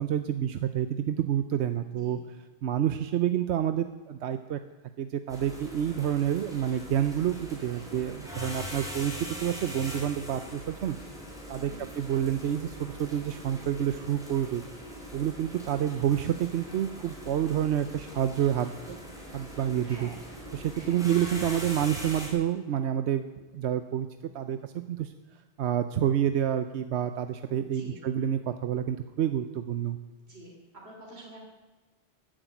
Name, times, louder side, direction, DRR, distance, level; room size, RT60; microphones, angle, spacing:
voice 1, 0.0-2.2 2.6-4.6 5.0-11.0 11.5-11.7 12.0-14.6 15.1-19.0 19.3-20.1 20.5-23.2 23.5-25.1 25.6-30.0, right 10 dB, 85° right, 9 dB, 1.0 m, -28 dB
sound 1, 5.3-22.3, equal, 5° right, 4.6 m, -42 dB
voice 2, 19.8-20.2 20.7-21.1 27.7-28.0 30.2-30.5 30.8-31.4, right 1 dB, 70° right, -2 dB, 3.4 m, -47 dB
14.5 x 10.0 x 9.2 m, 1.2 s
omnidirectional pair, 1.1 m